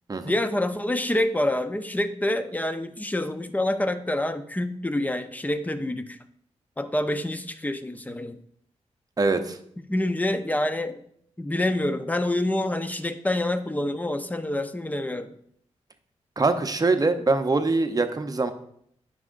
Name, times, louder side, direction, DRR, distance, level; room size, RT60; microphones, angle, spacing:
voice 1, 0.2-6.2 6.8-8.4 9.9-11.0 11.4-15.3, left 1 dB, 15° left, 10 dB, 0.7 m, -27 dB
voice 2, 9.2-9.6 16.4-18.5, right 3 dB, 30° right, 7 dB, 0.8 m, -23 dB
9.5 x 6.2 x 2.6 m, 0.68 s
cardioid pair, 60°, 12 cm